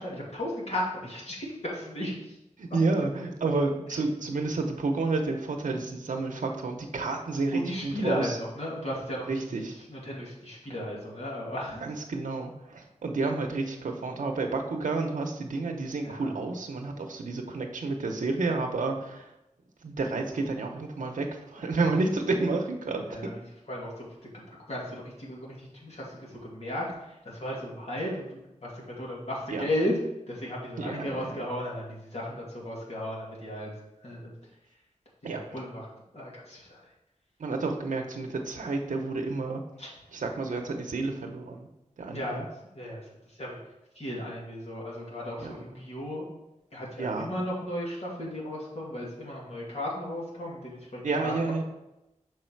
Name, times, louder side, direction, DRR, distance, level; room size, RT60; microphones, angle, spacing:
voice 1, 0.0-1.4 1.6-2.1 7.5-9.4 9.9-11.8 16.0-16.3 23.1-23.3 23.7-23.9 24.7-24.8 25.2-25.6 25.8-26.0 26.5-26.8 27.4-28.3 28.6-28.7 29.0-29.9 30.3-33.7 34.0-34.3 35.3-35.8 36.1-36.6 39.8-39.9 42.1-42.4 42.7-43.0 43.4-43.5 44.0-46.2 46.7-51.6, left 1 dB, 55° left, -4 dB, 2.5 m, -34 dB
voice 2, 2.6-8.4 9.3-9.8 11.8-19.3 19.8-23.2 29.5-29.7 30.8-31.4 35.2-35.6 37.4-39.6 40.1-41.7 42.0-42.4 45.4-45.6 47.0-47.3 51.0-51.6, right 3 dB, 90° right, 2 dB, 0.8 m, -30 dB
6.5 x 4.7 x 4.6 m, 0.92 s
wide cardioid pair, 80°, 13 cm